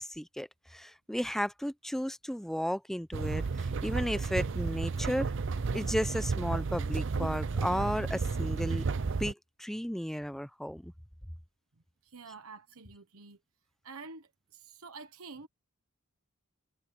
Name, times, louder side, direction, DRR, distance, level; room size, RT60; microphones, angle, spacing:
voice 1, 0.0-5.3 5.7-10.9, equal, ahead, 0.6 m, -34 dB
sound 1, 3.1-9.3, right 4 dB, 60° right, 0.6 m, -32 dB
voice 2, 12.0-13.4 13.8-15.5, right 4 dB, 90° right, 1.2 m, -48 dB
head